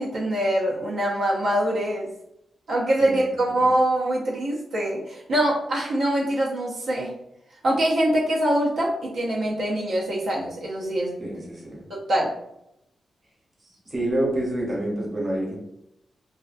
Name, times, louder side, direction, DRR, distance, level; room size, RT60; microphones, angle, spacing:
voice 1, 0.0-2.1 2.7-7.1 7.6-11.2 11.9-12.3, right 1 dB, 80° right, -4 dB, 0.5 m, -24 dB
voice 2, 11.2-11.8 13.9-15.6, right 1 dB, 30° right, -4 dB, 0.8 m, -27 dB
2.3 x 2.2 x 2.5 m, 0.80 s
wide cardioid pair, 130°, 0 cm